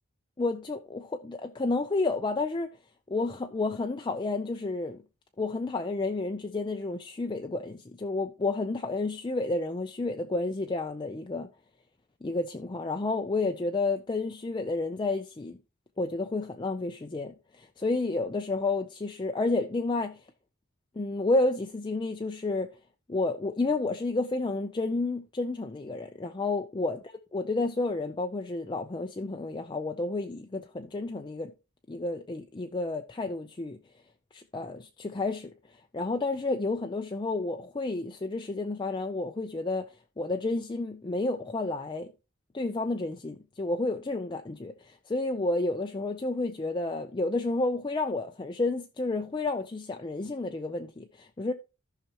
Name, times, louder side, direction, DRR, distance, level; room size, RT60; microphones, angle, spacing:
voice 1, 0.4-2.7 3.1-5.0 5.4-11.5 12.2-15.6 16.0-20.2 21.0-22.7 23.1-27.0 27.3-31.5 31.9-33.8 34.3-35.5 35.9-39.9 40.2-42.1 42.5-51.5, left 2 dB, 20° left, 0.4 m, -30 dB
14.0 x 5.8 x 2.9 m
head